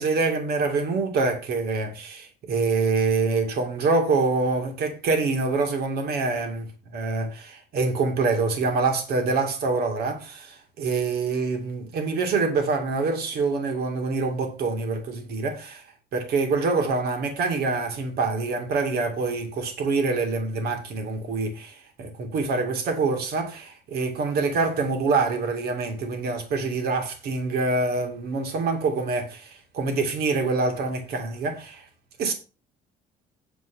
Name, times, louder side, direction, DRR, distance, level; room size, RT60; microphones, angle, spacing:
voice 1, 0.0-15.8 16.1-31.9 32.2-32.3, right 3 dB, 70° right, 2.6 m, -25 dB
9.5 x 4.8 x 6.3 m
cardioid pair, 110°, 17 cm